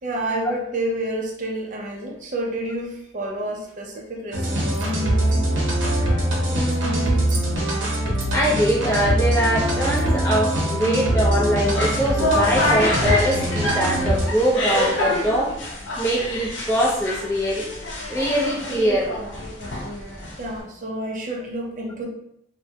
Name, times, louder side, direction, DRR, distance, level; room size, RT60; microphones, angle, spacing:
voice 1, 0.0-5.0 20.1-22.1, right 1 dB, 40° right, 0 dB, 0.4 m, -29 dB
sound 1, 4.3-14.3, right 1 dB, 85° right, 0.6 m, -22 dB
voice 2, 6.5-7.2 8.3-15.6 16.0-17.7 18.1-19.2, equal, 15° left, -6 dB, 0.5 m, -23 dB
sound 2, 11.7-20.6, left 1 dB, 75° left, 0.5 m, -26 dB
2.2 x 2.1 x 2.7 m, 0.76 s
head